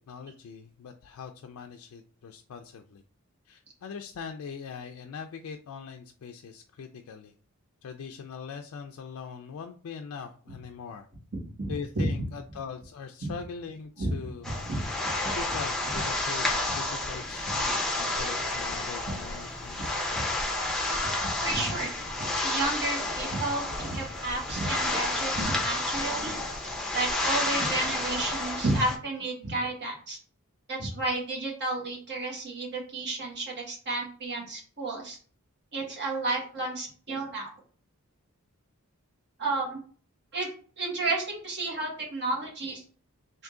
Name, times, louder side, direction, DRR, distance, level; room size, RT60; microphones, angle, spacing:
voice 1, 0.1-3.0 3.5-7.3 7.8-11.1 11.7-14.5 15.3-20.0, left 6 dB, 75° left, 4 dB, 0.3 m, -41 dB
voice 2, 11.6-12.2 13.2-13.3 14.0-14.1 14.7-14.8 15.2-15.3 15.9-16.0 19.1-19.2 19.8-20.2 21.4-21.9 22.4-26.4 26.9-30.2 30.7-35.2 35.7-37.5 39.4-39.8 40.3-40.5 40.8-42.8, right 2 dB, 50° right, -2 dB, 1.4 m, -31 dB
sound 1, 14.4-29.0, left 2 dB, ahead, 0.6 m, -30 dB
3.6 x 2.6 x 3.7 m, 0.43 s
head